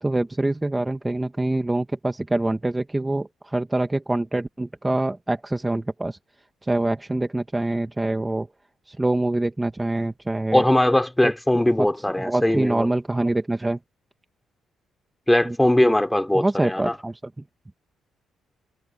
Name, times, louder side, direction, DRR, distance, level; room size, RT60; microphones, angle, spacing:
voice 1, 0.0-6.2 6.6-8.5 8.9-10.6 11.2-11.3 11.8-11.9 12.2-13.8 15.4-15.5 16.3-17.2, right 2 dB, 15° right, 1.4 m, -25 dB
voice 2, 10.5-12.9 15.3-17.0, left 1 dB, 10° left, 2.9 m, -20 dB
cardioid pair, 90°, 0 cm